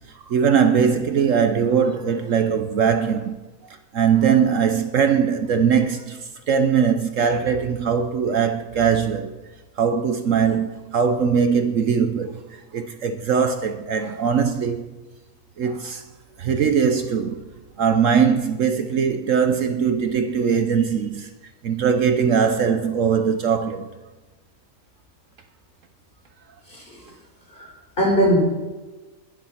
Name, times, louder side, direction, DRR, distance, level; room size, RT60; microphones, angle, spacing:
voice 1, 0.1-3.4 3.9-9.3 9.8-14.8 15.6-16.0 16.4-17.4 17.8-21.3 21.6-23.9, right 7 dB, 65° right, 1.1 m, -21 dB
voice 2, 26.7-27.0 27.5-27.7 28.0-28.4, equal, 35° left, 4.6 m, -20 dB
21.5 x 7.4 x 5.7 m
omnidirectional pair, 1.6 m